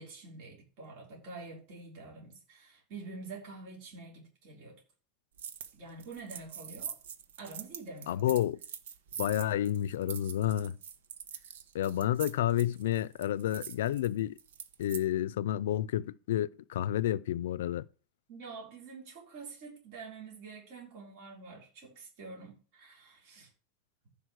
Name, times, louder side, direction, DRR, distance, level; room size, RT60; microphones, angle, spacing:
voice 1, 0.0-4.8 5.7-7.0 7.4-8.3 11.3-11.4 18.3-23.5, right 3 dB, 45° right, 4.0 m, -47 dB
sound 1, 5.4-5.7 6.0-15.0, right 8 dB, 90° right, 1.2 m, -44 dB
voice 2, 8.1-8.6 9.2-10.8 11.7-14.3 14.8-17.8, left 12 dB, 80° left, 0.5 m, -30 dB
14.5 x 5.2 x 6.4 m
supercardioid pair, 175°, 0 cm